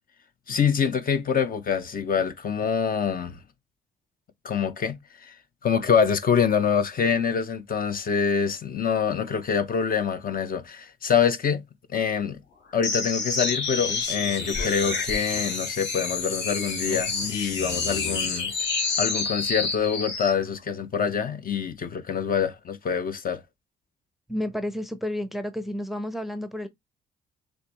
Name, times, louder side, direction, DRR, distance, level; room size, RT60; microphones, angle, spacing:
voice 1, 0.5-3.4 4.4-5.3 5.6-11.6 11.9-12.4 12.7-18.5 19.0-23.4, left 7 dB, 45° left, 0.8 m, -25 dB
sound 1, 12.8-20.4, left 4 dB, 65° left, 2.1 m, -28 dB
voice 2, 24.3-26.7, left 1 dB, ahead, 0.6 m, -31 dB
6.5 x 2.6 x 2.9 m
cardioid pair, 90°, 20 cm